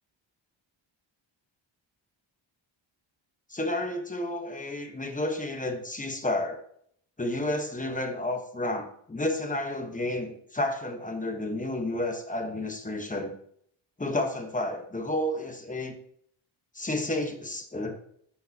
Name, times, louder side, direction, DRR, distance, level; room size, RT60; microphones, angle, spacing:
voice 1, 3.5-6.6 7.2-13.3 14.0-16.0 16.7-18.0, left 1 dB, 15° left, 4 dB, 1.1 m, -31 dB
11.0 x 6.6 x 2.8 m, 0.65 s
wide cardioid pair, 140°, 48 cm